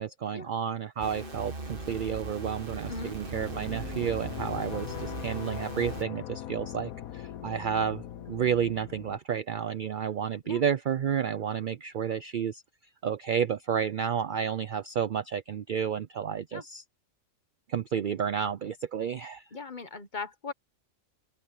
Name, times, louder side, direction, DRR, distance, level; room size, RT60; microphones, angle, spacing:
voice 1, 0.0-8.0 8.3-12.6 13.0-16.8 17.7-19.4, right 8 dB, 60° right, 0.5 m, -31 dB
sound 1, 1.0-6.0, right 2 dB, 40° right, 1.9 m, -39 dB
sound 2, 3.3-9.2, left 11 dB, 90° left, 1.2 m, -41 dB
voice 2, 19.5-20.5, left 4 dB, 35° left, 1.3 m, -38 dB
open air
omnidirectional pair, 1.4 m